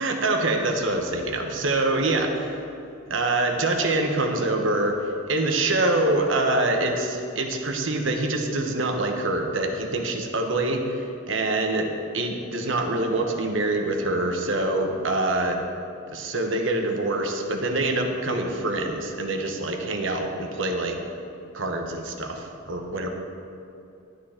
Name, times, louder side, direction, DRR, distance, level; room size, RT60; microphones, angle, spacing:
voice 1, 0.0-2.5 3.1-4.9 5.3-15.6 16.1-21.0 21.5-23.1, right 2 dB, 65° right, 3 dB, 1.1 m, -25 dB
12.0 x 9.3 x 4.4 m, 2.7 s
head